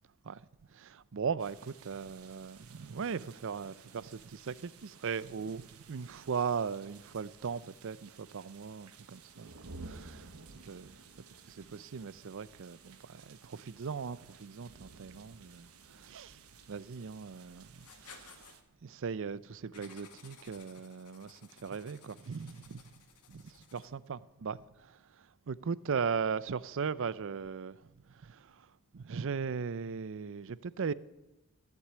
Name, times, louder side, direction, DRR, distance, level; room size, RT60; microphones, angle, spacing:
voice 1, 0.7-9.5 9.8-10.3 10.6-11.0 11.5-16.4 16.7-18.5 18.8-22.8 23.3-30.9, right 6 dB, 60° right, 0.5 m, -38 dB
sound 1, 1.4-18.6, right 4 dB, 75° right, 1.3 m, -55 dB
Writing, 17.8-18.6 19.7-24.1, left 6 dB, 85° left, 1.9 m, -57 dB
14.5 x 8.2 x 8.7 m
head